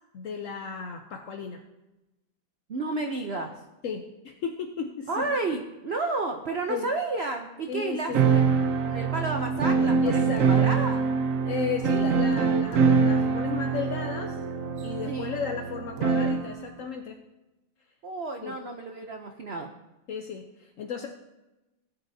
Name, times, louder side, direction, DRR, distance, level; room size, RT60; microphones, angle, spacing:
voice 1, 0.1-1.7 3.8-5.3 6.7-6.9 7.7-8.3 10.0-10.7 11.5-14.4 14.8-17.2 18.4-18.5 20.1-21.1, left 6 dB, 65° left, 4 dB, 0.8 m, -34 dB
voice 2, 2.7-3.6 5.1-8.4 8.8-10.2 10.5-11.0 15.1-15.3 18.0-19.7, right 3 dB, 75° right, 4 dB, 0.5 m, -31 dB
sound 1, 8.1-16.5, right 5 dB, 55° right, 0.9 m, -24 dB
18.0 x 9.0 x 2.7 m, 1.0 s
omnidirectional pair, 2.1 m